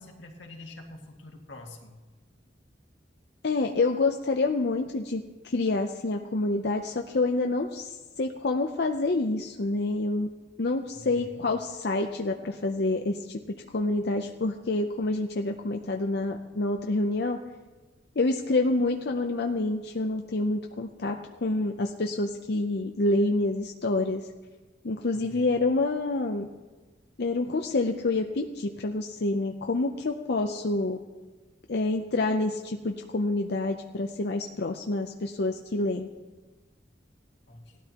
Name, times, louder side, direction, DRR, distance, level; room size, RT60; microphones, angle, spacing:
voice 1, 0.0-1.9 11.1-11.4 25.1-25.5 37.5-37.6, left 2 dB, 85° left, 1 dB, 2.1 m, -46 dB
voice 2, 3.4-10.3 10.6-17.4 18.2-24.3 24.8-26.5 27.2-31.0 31.7-36.1, left 2 dB, 60° left, 3 dB, 0.6 m, -27 dB
18.0 x 12.5 x 3.0 m, 1.3 s
head